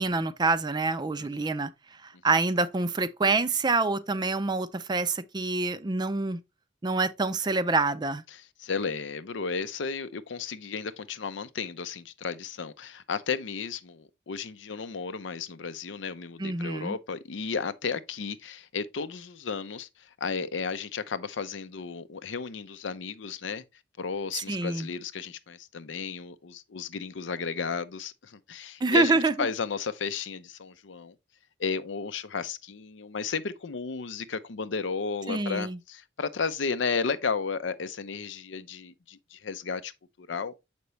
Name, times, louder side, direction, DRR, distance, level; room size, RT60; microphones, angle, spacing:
voice 1, 0.0-1.7 2.0-6.4 6.8-8.2 16.4-16.9 24.3-24.9 28.8-29.3 35.3-35.8, right 3 dB, 25° right, 0.4 m, -26 dB
voice 2, 1.2-1.5 8.3-23.6 24.0-31.1 31.6-39.9 40.2-40.6, left 5 dB, 75° left, 0.6 m, -33 dB
6.8 x 5.2 x 3.1 m
head